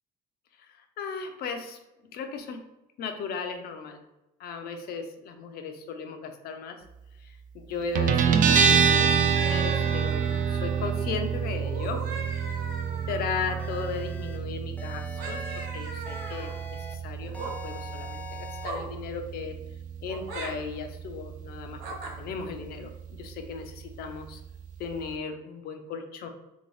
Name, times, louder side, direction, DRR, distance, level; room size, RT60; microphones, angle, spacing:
voice 1, 0.6-1.8 2.1-2.6 3.0-4.0 4.4-6.8 7.2-12.0 12.3-12.5 13.1-15.4 15.7-19.6 20.0-24.4 24.8-26.3, left 5 dB, 65° left, 6 dB, 0.5 m, -36 dB
Guitar, 8.0-25.2, right 6 dB, 50° right, 0.4 m, -28 dB
sound 1, 9.3-11.0 11.6-14.0 15.1-16.6 17.2-17.5 18.6-18.9 20.1-20.5 21.8-22.1, right 3 dB, 85° right, 0.9 m, -39 dB
sound 2, 13.6-14.4 14.8-15.7 16.1-16.9 17.3-18.7, left 2 dB, 10° left, 0.5 m, -42 dB
2.8 x 2.7 x 3.1 m, 0.98 s
cardioid pair, 110°, 17 cm